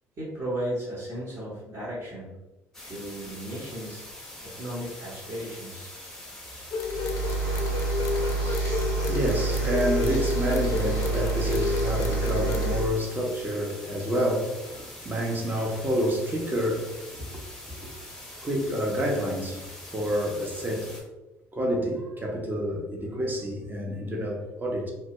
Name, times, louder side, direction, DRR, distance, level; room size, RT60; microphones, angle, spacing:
voice 1, 0.2-2.3 2.8-4.0 4.4-5.9, right 1 dB, 45° right, -10 dB, 1.1 m, -35 dB
sound 1, 2.7-21.0, left 1 dB, 5° left, 0.8 m, -44 dB
sound 2, 6.7-12.7, left 4 dB, 50° left, 0.4 m, -31 dB
sound 3, 6.8-12.9, right 3 dB, 65° right, 1.3 m, -28 dB
voice 2, 8.1-8.6 9.0-17.4 17.8-17.9 18.4-21.0 21.5-24.9, equal, 25° right, 0 dB, 0.7 m, -29 dB
2.3 x 2.1 x 2.9 m, 1.0 s
hypercardioid pair, 60°, 7 cm